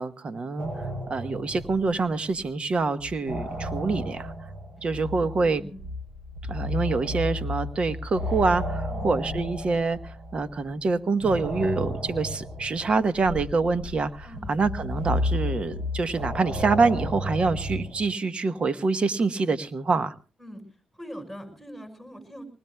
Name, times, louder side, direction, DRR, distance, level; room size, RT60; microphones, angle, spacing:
voice 1, 0.0-4.3 4.8-5.6 6.5-20.1, right 4 dB, 45° right, 13 dB, 1.1 m, -26 dB
sound 1, 0.6-2.4 2.7-10.6 11.2-18.1, left 1 dB, 85° right, 7.7 m, -33 dB
voice 2, 8.9-9.2 14.2-14.6 20.4-20.6 21.0-22.5, equal, 5° right, 7 dB, 5.9 m, -41 dB
24.0 x 20.0 x 2.3 m, 0.34 s
cardioid pair, 70°, 3 cm